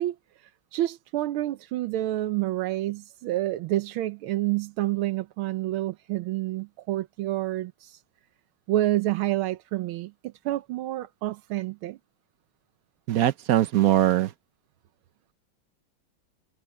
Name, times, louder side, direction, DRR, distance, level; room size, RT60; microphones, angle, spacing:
voice 1, 0.0-8.0 8.7-12.0, right 15 dB, 90° right, 1.6 m, -29 dB
voice 2, 13.1-14.3, right 13 dB, 65° right, 0.9 m, -21 dB
omnidirectional pair, 2.2 m